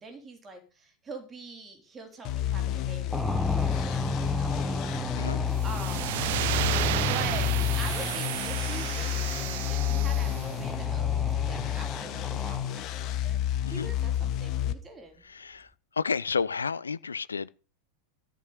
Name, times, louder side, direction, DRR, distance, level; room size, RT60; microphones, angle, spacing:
voice 1, 0.0-6.3 7.0-13.4 13.7-15.3, right 3 dB, 20° right, 3.8 m, -44 dB
sound 1, 2.2-14.7, left 11 dB, 40° left, 1.2 m, -30 dB
sound 2, 3.1-13.0, left 1 dB, 5° left, 1.0 m, -34 dB
sound 3, 5.6-10.5, right 15 dB, 50° right, 0.7 m, -32 dB
voice 2, 15.2-15.7 16.0-17.5, left 5 dB, 75° left, 0.6 m, -31 dB
14.0 x 6.2 x 8.2 m
figure-of-eight pair, 90°, 0 cm